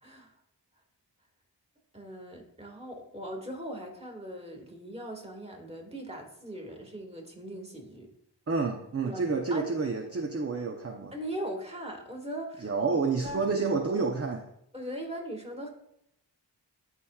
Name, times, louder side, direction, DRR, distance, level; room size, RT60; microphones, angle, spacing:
voice 1, 1.9-8.1 9.0-9.7 11.1-12.7 13.2-13.5 14.7-15.7, right 1 dB, 15° right, 2 dB, 1.8 m, -39 dB
voice 2, 8.5-11.1 12.6-14.4, right 4 dB, 35° right, 3 dB, 0.7 m, -29 dB
12.0 x 4.4 x 2.4 m, 0.77 s
cardioid pair, 40°, 43 cm